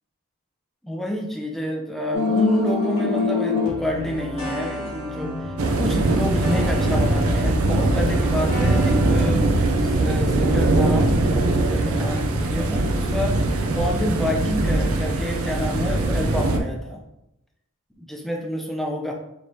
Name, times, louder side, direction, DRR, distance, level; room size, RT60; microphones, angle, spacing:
voice 1, 0.8-9.5 9.8-13.4 13.7-17.0 18.0-19.1, equal, ahead, 0 dB, 0.5 m, -28 dB
sound 1, 2.1-9.3, left 3 dB, 70° left, 1.4 m, -27 dB
sound 2, 5.6-16.6, right 2 dB, 75° right, 0.5 m, -21 dB
5.0 x 3.2 x 2.7 m, 0.88 s
head